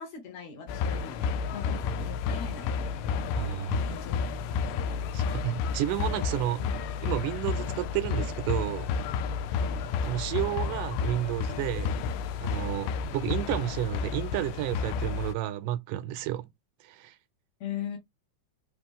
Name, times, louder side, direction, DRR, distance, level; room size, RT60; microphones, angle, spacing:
voice 1, 0.0-3.3 3.9-4.2 4.6-5.0 6.6-6.8 9.5-9.9 17.6-18.0, left 8 dB, 65° left, 2.0 m, -41 dB
sound 1, 0.7-15.3, left 5 dB, 85° left, 2.2 m, -31 dB
voice 2, 3.4-3.8 5.1-6.6 7.0-8.9 10.0-12.0 12.4-16.5 16.8-17.2, right 13 dB, 80° right, 2.0 m, -31 dB
5.0 x 2.9 x 3.5 m
omnidirectional pair, 3.7 m